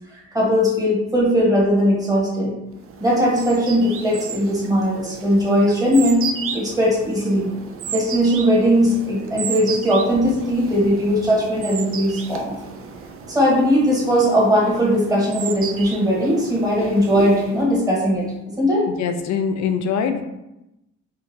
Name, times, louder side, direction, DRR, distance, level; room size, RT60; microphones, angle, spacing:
voice 1, 0.1-2.5 3.0-6.2 6.5-7.5 7.9-12.6 13.3-18.8, equal, 10° right, -5 dB, 1.3 m, -19 dB
sound 1, 2.8-17.8, right 6 dB, 45° right, 0.4 m, -34 dB
voice 2, 19.0-20.2, left 6 dB, 65° left, 7 dB, 0.5 m, -22 dB
3.7 x 2.5 x 2.7 m, 0.90 s
cardioid pair, 90°, 30 cm